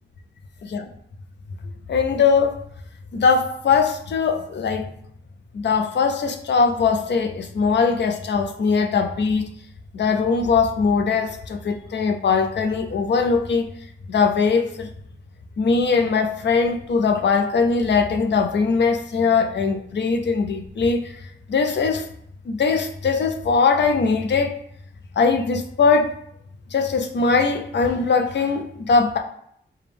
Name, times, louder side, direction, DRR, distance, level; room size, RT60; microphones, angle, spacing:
voice 1, 1.9-2.6 3.1-4.9 5.5-9.5 9.9-13.7 14.1-14.9 15.6-21.2 21.5-22.1 22.5-24.6 25.2-26.1 26.7-29.2, left 5 dB, 65° left, 5 dB, 0.5 m, -20 dB
5.0 x 2.2 x 3.4 m, 0.69 s
wide cardioid pair, 140°, 19 cm